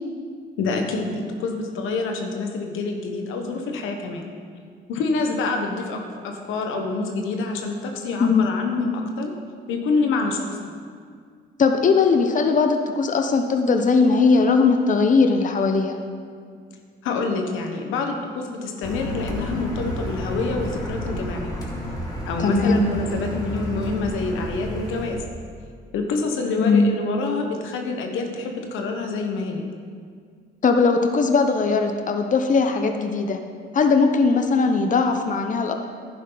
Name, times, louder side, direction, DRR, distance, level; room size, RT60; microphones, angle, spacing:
voice 1, 0.6-4.3 4.9-9.3 9.7-10.7 17.0-21.7 22.3-25.2 25.9-29.6, left 3 dB, 90° left, 4 dB, 1.3 m, -27 dB
voice 2, 11.6-16.0 22.4-22.8 26.6-26.9 30.6-33.4 33.7-35.7, left 4 dB, 40° left, 5 dB, 0.9 m, -19 dB
Car, 18.8-25.1, equal, 20° left, 2.4 m, -31 dB
11.0 x 10.0 x 4.0 m, 2.1 s
cardioid pair, 90°, 20 cm